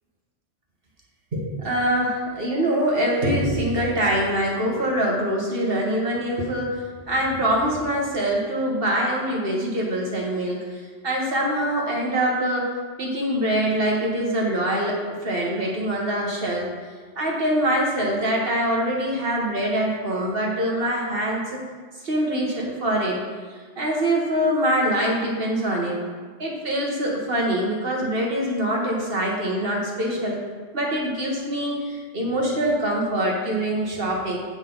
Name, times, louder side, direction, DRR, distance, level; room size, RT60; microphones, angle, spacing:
voice 1, 1.3-10.6 11.0-12.7 13.0-16.7 17.2-21.6 22.0-23.2 23.8-26.0 26.4-30.4 30.7-34.4, right 1 dB, 50° right, -2 dB, 1.7 m, -24 dB
8.9 x 6.5 x 3.9 m, 1.5 s
omnidirectional pair, 1.3 m